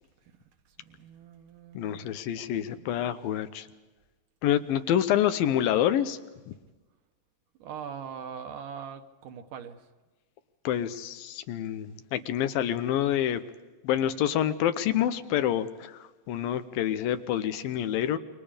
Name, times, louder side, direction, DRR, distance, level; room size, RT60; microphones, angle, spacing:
voice 1, 0.8-2.2 2.5-3.1 7.6-9.9, right 7 dB, 70° right, 6 dB, 2.7 m, -42 dB
voice 2, 1.7-3.7 4.4-6.2 6.5-6.6 10.6-13.4 13.8-18.2, left 11 dB, 85° left, 11 dB, 2.8 m, -27 dB
28.5 x 23.5 x 5.1 m, 1.2 s
omnidirectional pair, 4.0 m